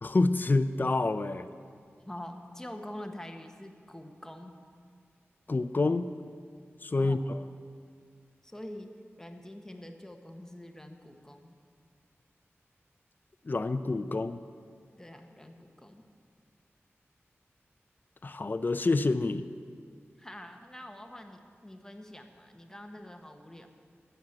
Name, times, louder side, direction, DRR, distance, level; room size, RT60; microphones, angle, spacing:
voice 1, 0.0-1.5 5.5-6.1 6.8-7.4 13.4-14.4 18.2-19.5, left 3 dB, 40° left, 10 dB, 0.5 m, -27 dB
voice 2, 2.0-4.6 7.0-7.2 8.4-8.9 9.2-11.6 14.9-16.0 20.2-23.7, left 1 dB, 10° left, 4 dB, 1.1 m, -45 dB
11.0 x 8.0 x 8.6 m, 2.1 s
wide cardioid pair, 75°, 5 cm